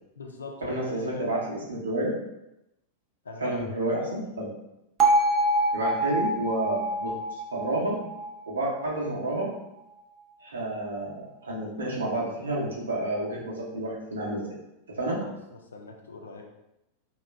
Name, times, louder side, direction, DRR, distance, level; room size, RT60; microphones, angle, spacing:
voice 1, 0.2-1.4 3.2-3.6 4.0-4.1 15.1-15.3 15.7-16.4, left 3 dB, 70° left, 1 dB, 0.5 m, -40 dB
voice 2, 0.7-2.1 3.4-4.5 5.7-8.0 8.5-9.5 10.4-14.4 14.9-15.2, right 1 dB, 70° right, -4 dB, 0.9 m, -30 dB
Bell, 5.0-9.1, right 1 dB, 30° right, 0.5 m, -26 dB
2.9 x 2.3 x 3.3 m, 0.88 s
figure-of-eight pair, 90°, 0 cm